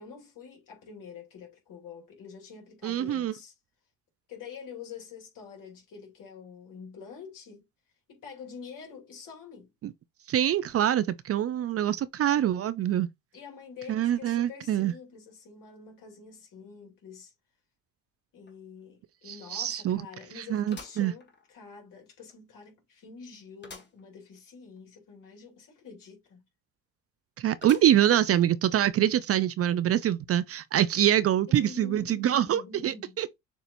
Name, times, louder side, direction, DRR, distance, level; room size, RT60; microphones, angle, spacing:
voice 1, 0.0-3.5 4.3-7.6 8.1-9.7 13.3-17.3 18.3-26.4 31.5-33.2, left 6 dB, 70° left, 2.7 m, -46 dB
voice 2, 2.8-3.3 10.3-13.1 13.9-14.9 19.3-20.0 20.4-21.1 27.4-33.4, right 11 dB, 45° right, 0.4 m, -25 dB
sound 1, 18.5-18.6 19.0-19.1 20.7-21.8 22.3-22.4 23.6-24.0 24.5-24.6 24.7-24.8 27.6-28.2 28.8-28.9 29.9-30.0, left 3 dB, 30° left, 1.4 m, -48 dB
6.8 x 2.8 x 2.5 m
supercardioid pair, 80°, 34 cm